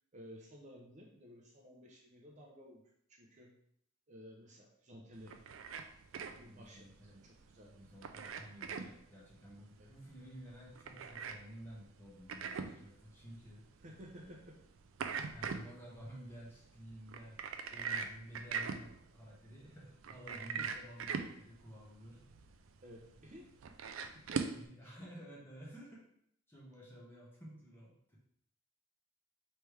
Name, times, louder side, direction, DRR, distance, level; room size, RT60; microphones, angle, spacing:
voice 1, 0.1-2.8 3.1-3.6 4.1-5.4 6.2-7.8 9.8-9.9 13.8-14.6 20.6-20.7 22.8-23.5 24.1-24.5 24.8-25.0, equal, 40° right, -1 dB, 0.7 m, -55 dB
sound 1, 5.1-24.7, right 5 dB, 85° right, 0.4 m, -43 dB
voice 2, 6.4-7.2 7.7-13.6 14.1-14.4 15.3-17.4 17.7-22.2 24.5-26.0 26.5-28.2, equal, 10° left, -5 dB, 1.3 m, -52 dB
3.3 x 3.3 x 4.7 m, 0.69 s
head